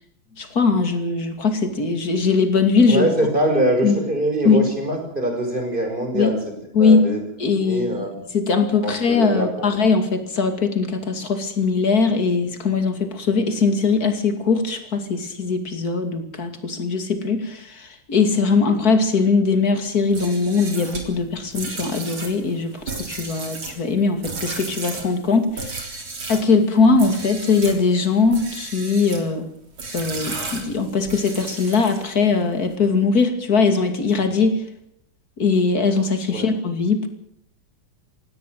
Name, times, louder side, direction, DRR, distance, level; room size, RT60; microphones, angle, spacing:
voice 1, 0.4-3.1 3.8-4.0 4.4-4.6 6.1-6.3 6.7-7.1 7.4-8.1 8.3-25.8 26.3-29.5 29.9-34.6 35.4-37.1, left 4 dB, 45° left, 8 dB, 3.0 m, -20 dB
voice 2, 2.9-6.4 6.8-7.2 7.6-8.1 8.8-9.7 36.3-36.5, right 1 dB, 25° right, 4 dB, 5.9 m, -23 dB
sound 1, 20.0-26.5 26.9-27.8 28.3-29.3 29.8-32.2, right 3 dB, 75° right, 4.5 m, -34 dB
17.5 x 17.5 x 9.4 m, 0.71 s
omnidirectional pair, 2.2 m